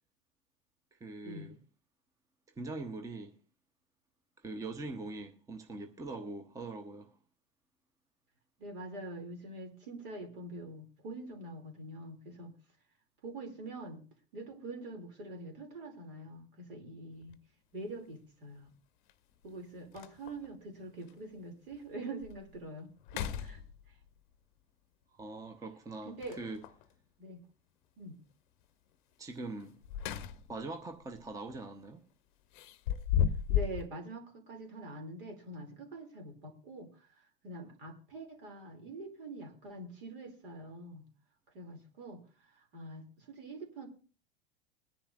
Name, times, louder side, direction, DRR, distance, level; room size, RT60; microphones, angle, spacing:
voice 1, 0.9-1.5 2.6-3.4 4.4-7.1 25.2-26.6 29.2-29.8 30.5-32.0, right 3 dB, 10° right, 0.8 m, -42 dB
voice 2, 8.6-12.5 13.2-14.0 14.3-17.4 17.7-18.7 19.4-23.6 23.9-24.0 26.0-26.4 27.2-27.4 28.0-28.2 30.1-30.3 33.5-41.0 41.5-43.9, right 2 dB, 65° right, 2.7 m, -45 dB
sound 1, 17.2-17.3 19.1-19.2 19.6-19.7 19.9-20.5 21.1-21.2 21.7-21.8 22.2-22.6 23.0-24.1 26.2-26.8 29.6-30.7 31.0-31.3 32.5-33.9, left 9 dB, 55° left, 0.7 m, -34 dB
21.0 x 10.0 x 2.5 m
figure-of-eight pair, 85°, 30 cm